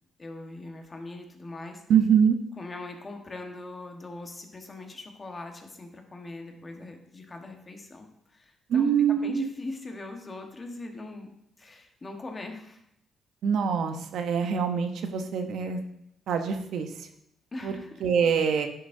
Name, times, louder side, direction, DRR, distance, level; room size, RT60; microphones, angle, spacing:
voice 1, 0.2-1.8 2.6-11.3 11.6-12.8 17.5-17.9, left 2 dB, 30° left, 4 dB, 1.3 m, -41 dB
voice 2, 1.9-2.4 8.7-9.5 13.4-15.8 16.3-17.1 17.6-17.7 18.0-18.7, right 7 dB, 75° right, 7 dB, 0.8 m, -24 dB
10.0 x 7.1 x 2.7 m, 0.77 s
cardioid pair, 90°, 0 cm